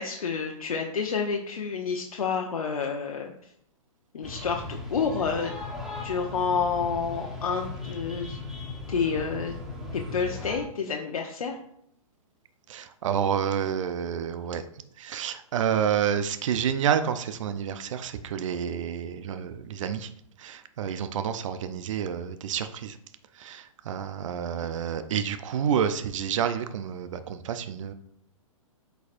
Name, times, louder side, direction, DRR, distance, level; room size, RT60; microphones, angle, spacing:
voice 1, 0.0-3.3 4.1-5.7 6.0-8.4 8.9-9.5 9.9-11.6, left 5 dB, 80° left, 1 dB, 0.8 m, -29 dB
sound 1, 4.2-10.6, left 2 dB, 5° right, 1.2 m, -37 dB
voice 2, 12.7-14.6 15.0-20.1 20.4-23.0 23.4-27.9, right 8 dB, 60° right, 10 dB, 0.6 m, -29 dB
8.2 x 4.6 x 2.6 m, 0.71 s
hypercardioid pair, 130°, 18 cm